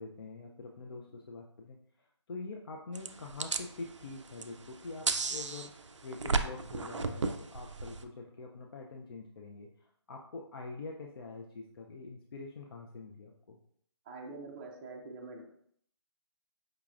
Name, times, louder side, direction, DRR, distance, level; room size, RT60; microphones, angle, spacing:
voice 1, 0.0-1.8 2.3-5.7 6.0-9.7 10.1-13.6, left 3 dB, 55° left, 0 dB, 0.5 m, -45 dB
sound 1, 3.0-8.0, right 4 dB, 90° right, 0.4 m, -35 dB
voice 2, 14.1-15.4, right 3 dB, 15° right, 0 dB, 0.4 m, -45 dB
5.0 x 2.8 x 2.4 m, 0.65 s
figure-of-eight pair, 150°, 15 cm